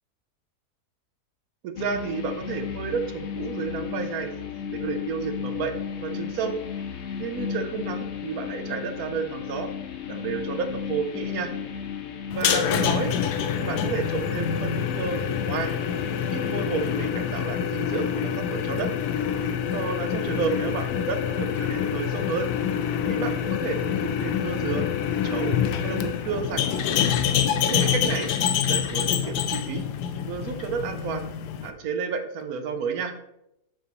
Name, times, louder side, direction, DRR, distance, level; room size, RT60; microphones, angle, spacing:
voice 1, 1.6-4.3 4.7-5.7 6.0-6.6 7.2-9.7 10.1-11.5 12.3-13.1 13.6-15.7 16.3-18.9 19.7-22.5 23.1-24.9 25.2-25.5 25.8-26.6 27.6-28.3 28.6-29.8 30.3-31.2 31.6-33.1, right 6 dB, 70° right, 8 dB, 1.2 m, -31 dB
sound 1, 1.8-17.1, left 7 dB, 55° left, 0.8 m, -35 dB
sound 2, 12.3-31.7, left 8 dB, 85° left, 1.2 m, -26 dB
6.7 x 6.4 x 3.0 m, 0.84 s
omnidirectional pair, 1.7 m